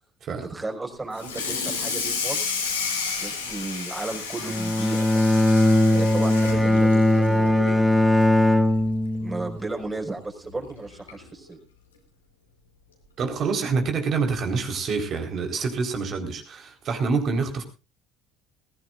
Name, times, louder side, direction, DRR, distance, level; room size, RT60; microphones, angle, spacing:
voice 1, 0.4-2.5 3.2-5.3 5.9-8.0 9.2-11.6, right 2 dB, 20° right, 3 dB, 5.2 m, -34 dB
Water tap faucet / Sink (filling or washing), 1.1-7.8 8.2-8.4 8.8-8.9 9.3-9.4 10.5-10.6 11.1-11.3, left 5 dB, 90° left, 4.3 m, -31 dB
Bowed string instrument, 4.4-9.7, left 1 dB, ahead, 1.9 m, -20 dB
voice 2, 13.2-17.6, right 4 dB, 45° right, 5 dB, 4.1 m, -26 dB
21.0 x 16.0 x 2.5 m, 0.30 s
hypercardioid pair, 65°, 0 cm